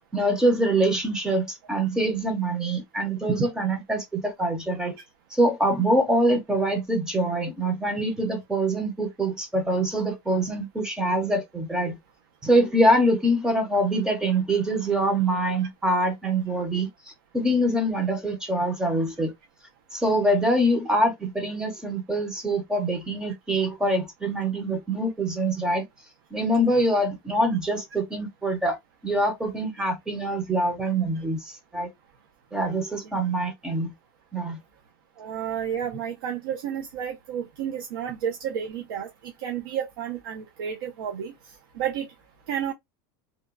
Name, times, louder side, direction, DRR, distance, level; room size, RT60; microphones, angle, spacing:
voice 1, 0.0-5.0 5.3-12.0 12.4-16.9 17.3-19.3 19.9-25.8 26.3-28.8 29.0-31.9 32.5-33.9 34.3-34.6, right 1 dB, 5° right, 0.5 m, -24 dB
voice 2, 35.2-41.3 41.7-42.1 42.5-42.7, right 9 dB, 85° right, 0.6 m, -31 dB
2.8 x 2.2 x 2.3 m
supercardioid pair, 180°, 12 cm